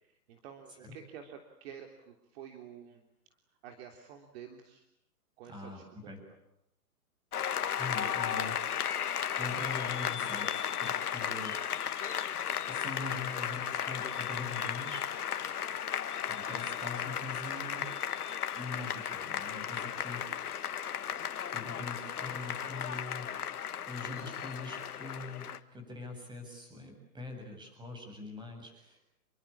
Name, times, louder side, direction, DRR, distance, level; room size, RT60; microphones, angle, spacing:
voice 1, 0.0-3.0 3.6-4.9 5.4-6.2 7.8-8.2 16.6-16.7 19.7-20.1, right 8 dB, 40° right, 4 dB, 3.5 m, -50 dB
voice 2, 5.4-6.2 7.8-8.5 9.3-11.5 12.7-15.1 16.3-17.9 18.5-20.2 21.5-23.3 23.9-29.0, left 3 dB, 10° right, 4 dB, 7.8 m, -43 dB
Applause, 7.3-25.6, left 9 dB, 70° left, 1.9 m, -35 dB
28.5 x 23.5 x 8.7 m, 0.76 s
hypercardioid pair, 145°, 46 cm